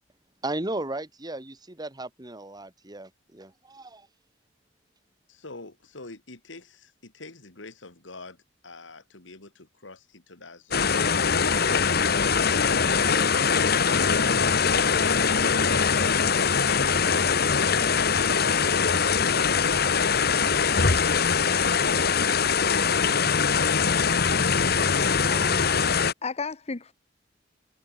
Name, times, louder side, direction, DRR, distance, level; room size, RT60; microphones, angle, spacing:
voice 1, 0.4-4.1 25.2-25.9, right 2 dB, 20° right, 2.4 m, -36 dB
voice 2, 5.3-8.4 8.6-13.2 14.0-17.2, left 4 dB, 85° left, 2.8 m, -42 dB
sound 1, 10.7-26.1, left 6 dB, 55° left, 1.5 m, -22 dB
voice 3, 25.1-25.7 26.2-26.9, left 4 dB, 35° left, 0.8 m, -34 dB
head